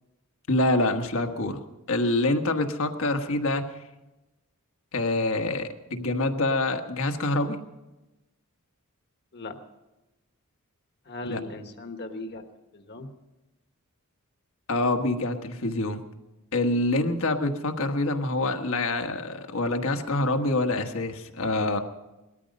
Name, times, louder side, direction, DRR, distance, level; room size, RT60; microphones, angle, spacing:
voice 1, 0.5-3.6 4.9-7.6 11.3-11.4 14.7-16.0 16.5-21.8, left 2 dB, 65° left, 5 dB, 1.4 m, -26 dB
voice 2, 11.0-12.4 12.7-13.1, left 2 dB, 50° left, 5 dB, 1.4 m, -38 dB
20.0 x 13.5 x 5.3 m, 1.0 s
head